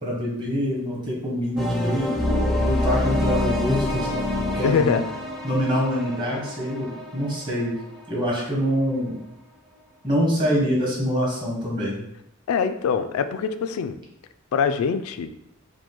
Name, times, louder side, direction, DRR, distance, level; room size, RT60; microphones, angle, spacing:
voice 1, 0.0-5.0 5.4-7.8 8.1-9.2 10.0-12.0, equal, 20° right, -4 dB, 1.1 m, -25 dB
sound 1, 1.6-8.4, left 1 dB, ahead, 0.5 m, -26 dB
voice 2, 4.6-5.0 12.5-14.0 14.5-15.3, left 6 dB, 90° left, 9 dB, 0.3 m, -23 dB
4.8 x 2.2 x 3.7 m, 0.82 s
head